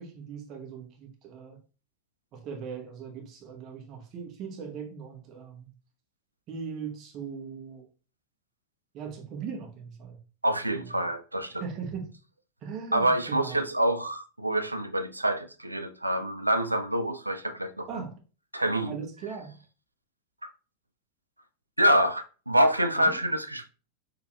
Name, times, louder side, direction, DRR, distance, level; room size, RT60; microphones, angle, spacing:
voice 1, 0.0-1.6 2.3-5.7 6.5-7.9 8.9-10.2 10.7-10.8 11.6-12.1 12.6-13.6 17.9-18.1 18.8-19.6 22.9-23.2, right 6 dB, 35° right, 1.0 m, -39 dB
voice 2, 10.4-11.6 12.9-18.0 18.5-19.0 20.4-20.5 21.8-23.7, right 1 dB, 85° right, 0.3 m, -26 dB
4.7 x 3.4 x 2.3 m
figure-of-eight pair, 90°, 0 cm